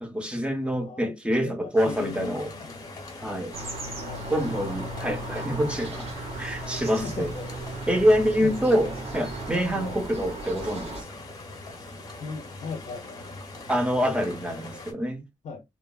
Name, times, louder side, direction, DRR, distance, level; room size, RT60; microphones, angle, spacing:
voice 1, 0.0-2.5 3.2-3.6 4.3-7.3 7.9-11.2 13.7-15.2, equal, 10° right, 0.5 m, -26 dB
voice 2, 0.8-2.9 4.0-4.3 7.0-7.5 8.4-9.0 9.7-10.0 12.2-13.4 15.4-15.6, left 5 dB, 70° left, 0.5 m, -38 dB
sound 1, 1.8-14.9, left 2 dB, 30° left, 0.7 m, -41 dB
sound 2, 3.5-11.0, right 2 dB, 55° right, 0.7 m, -36 dB
2.9 x 2.1 x 2.2 m
wide cardioid pair, 175°, 12 cm